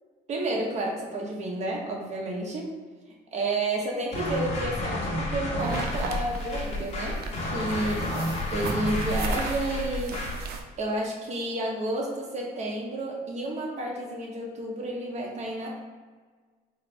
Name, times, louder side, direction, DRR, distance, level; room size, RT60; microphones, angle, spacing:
voice 1, 0.3-2.7 3.3-8.2 8.5-10.2 10.8-15.8, right 1 dB, 40° right, -2 dB, 1.0 m, -31 dB
sound 1, 4.1-10.5, left 1 dB, 40° left, 0.9 m, -31 dB
sound 2, 5.6-10.6, right 3 dB, 70° right, 0.5 m, -35 dB
4.1 x 2.6 x 3.3 m, 1.5 s
cardioid pair, 110°, 17 cm